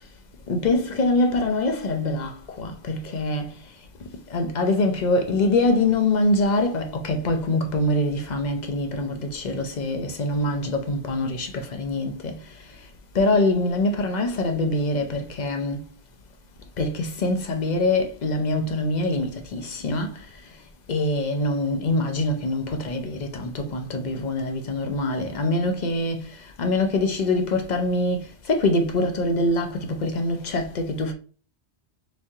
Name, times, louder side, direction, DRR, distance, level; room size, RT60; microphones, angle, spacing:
voice 1, 0.5-3.5 4.3-12.5 13.1-15.8 16.8-20.3 20.9-31.1, left 2 dB, 45° left, 0.7 m, -24 dB
3.6 x 3.1 x 2.7 m
omnidirectional pair, 1.1 m